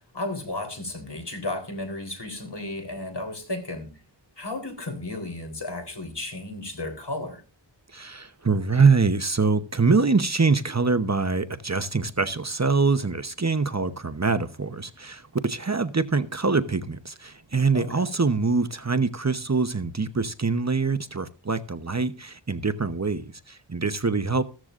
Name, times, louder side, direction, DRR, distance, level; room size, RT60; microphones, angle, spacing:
voice 1, 0.1-3.9 4.4-7.4 17.7-18.1, left 2 dB, 65° left, 3.7 m, -33 dB
voice 2, 7.9-24.4, right 4 dB, 35° right, 0.9 m, -24 dB
15.0 x 14.0 x 2.5 m
wide cardioid pair, 60°, 44 cm